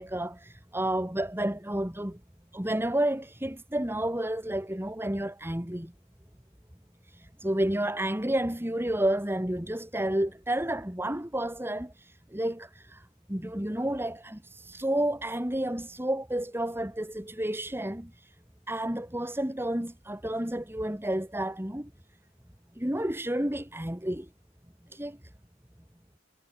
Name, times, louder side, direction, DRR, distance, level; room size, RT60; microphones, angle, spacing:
voice 1, 0.0-2.2 2.5-5.9 7.2-13.0 13.3-18.1 18.7-21.9 22.8-24.3 24.9-25.2, right 1 dB, 10° right, 2.0 m, -30 dB
head